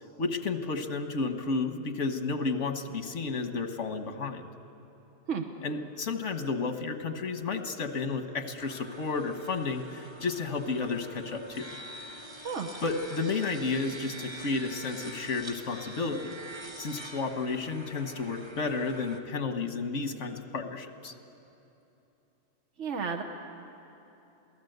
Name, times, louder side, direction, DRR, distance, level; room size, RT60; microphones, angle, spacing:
voice 1, 0.2-4.5 5.6-11.7 12.8-16.4 16.8-21.1, left 4 dB, 80° left, 7 dB, 1.6 m, -32 dB
sound 1, 8.6-19.2, right 1 dB, 25° right, 1.4 m, -45 dB
voice 2, 22.8-23.2, right 6 dB, 80° right, 3 dB, 1.5 m, -32 dB
27.5 x 18.0 x 8.0 m, 2.9 s
omnidirectional pair, 1.2 m